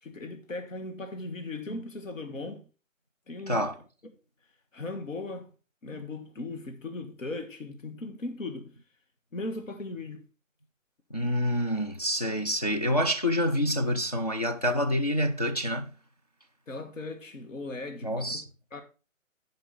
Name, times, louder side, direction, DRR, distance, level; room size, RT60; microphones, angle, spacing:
voice 1, 0.0-2.6 3.3-3.7 4.0-4.1 4.7-5.5 5.8-8.7 9.3-10.2 16.7-18.4 18.7-18.8, left 2 dB, 70° left, 1.7 m, -38 dB
voice 2, 11.1-15.9 18.0-18.4, equal, 35° left, 0.4 m, -27 dB
10.5 x 5.1 x 4.1 m
figure-of-eight pair, 145°, 40 cm